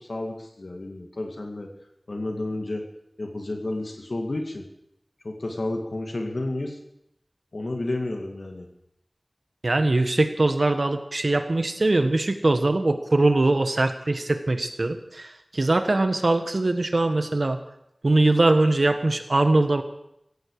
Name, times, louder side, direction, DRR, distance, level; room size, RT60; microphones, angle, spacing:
voice 1, 0.0-1.7 2.1-2.9 3.2-4.7 5.2-6.8 7.5-8.7, left 2 dB, 80° left, 3 dB, 2.2 m, -31 dB
voice 2, 9.6-17.6 18.0-19.8, right 2 dB, 75° right, 8 dB, 1.4 m, -22 dB
17.0 x 14.5 x 4.9 m, 0.78 s
wide cardioid pair, 45°, 0 cm